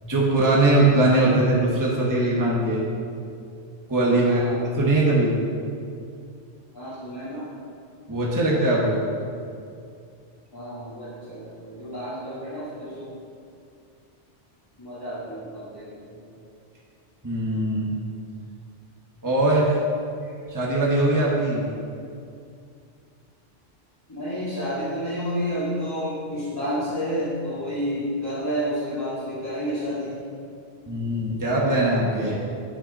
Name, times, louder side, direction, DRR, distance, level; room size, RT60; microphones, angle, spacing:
voice 1, 0.0-2.8 3.9-4.4 4.8-5.4 8.1-9.0 17.2-17.9 19.2-19.8 20.5-21.6 30.9-32.4, right 2 dB, 15° right, -5 dB, 1.3 m, -21 dB
voice 2, 4.2-4.7 6.7-7.5 10.5-13.1 14.8-16.2 20.2-20.3 24.1-30.2, equal, 20° left, -12 dB, 2.2 m, -30 dB
9.1 x 8.7 x 4.2 m, 2.4 s
omnidirectional pair, 1.2 m